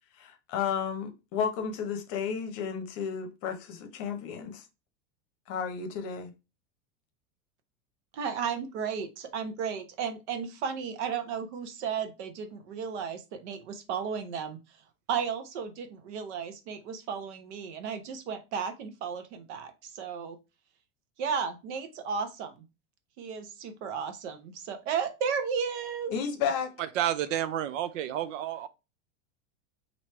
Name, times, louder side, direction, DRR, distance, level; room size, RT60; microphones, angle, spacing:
voice 1, 0.2-4.6 5.5-6.3 26.1-26.7, left 7 dB, 40° left, 0.8 m, -32 dB
voice 2, 8.1-14.6 15.1-20.4 21.2-22.5 23.2-26.1, right 6 dB, 65° right, 0.9 m, -34 dB
voice 3, 26.8-28.7, right 11 dB, 85° right, 0.6 m, -30 dB
3.0 x 2.7 x 4.4 m
supercardioid pair, 155°, 37 cm